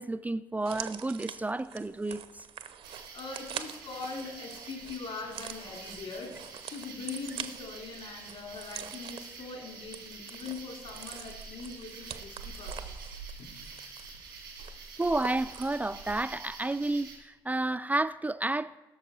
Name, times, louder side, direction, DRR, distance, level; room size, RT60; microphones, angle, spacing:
voice 1, 0.0-2.5 15.0-18.8, right 2 dB, 15° right, 0.4 m, -31 dB
sound 1, 0.6-16.3 16.6-16.7, right 9 dB, 55° right, 0.8 m, -45 dB
sound 2, 2.8-17.2, right 4 dB, 90° right, 1.8 m, -46 dB
voice 2, 3.1-12.9 13.4-13.5 14.6-14.7, left 4 dB, 55° left, 2.7 m, -42 dB
17.0 x 6.5 x 4.3 m
figure-of-eight pair, 45°, 11 cm